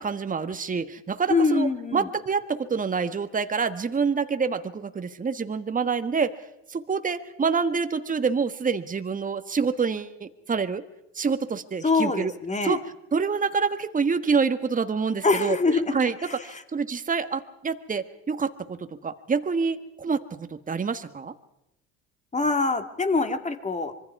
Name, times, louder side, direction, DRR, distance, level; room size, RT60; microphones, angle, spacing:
voice 1, 0.0-6.4 6.7-10.8 11.1-12.3 12.6-12.8 13.1-21.3, right 5 dB, 25° right, 9 dB, 1.5 m, -27 dB
voice 2, 1.3-2.1 11.8-12.8 15.2-16.6 22.3-24.0, left 3 dB, 20° left, 7 dB, 2.5 m, -24 dB
25.5 x 23.0 x 4.8 m, 0.85 s
hypercardioid pair, 65°, 32 cm